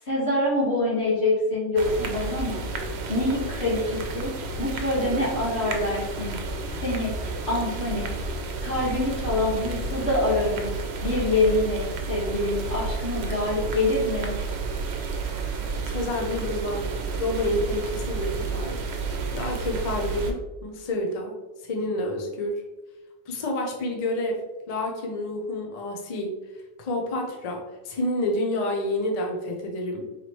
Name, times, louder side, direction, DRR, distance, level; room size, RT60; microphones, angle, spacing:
voice 1, 0.1-2.7 3.1-4.3 4.6-6.4 6.8-7.1 7.5-8.1 8.6-10.7 11.0-14.4, left 2 dB, 90° left, -7 dB, 1.9 m, -25 dB
sound 1, 1.8-20.3, right 4 dB, 80° right, 0.9 m, -31 dB
voice 2, 15.8-16.9 17.2-18.8 19.3-21.4 21.6-22.6 23.3-24.4 24.7-26.3 26.8-30.1, left 1 dB, 45° left, 1 dB, 0.6 m, -29 dB
4.0 x 3.1 x 3.0 m, 1.1 s
omnidirectional pair, 1.1 m